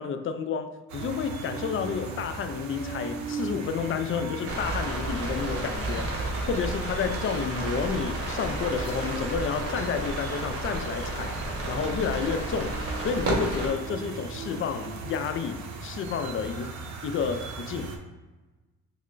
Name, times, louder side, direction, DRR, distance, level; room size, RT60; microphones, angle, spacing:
voice 1, 0.0-6.2 6.5-11.3 11.7-16.7 17.0-17.9, left 6 dB, 45° left, 8 dB, 0.4 m, -30 dB
sound 1, 0.9-18.0, right 4 dB, 65° right, 0.6 m, -38 dB
sound 2, 4.5-13.7, right 2 dB, 50° right, 1.1 m, -32 dB
5.6 x 2.1 x 2.5 m, 1.2 s
cardioid pair, 90°, 30 cm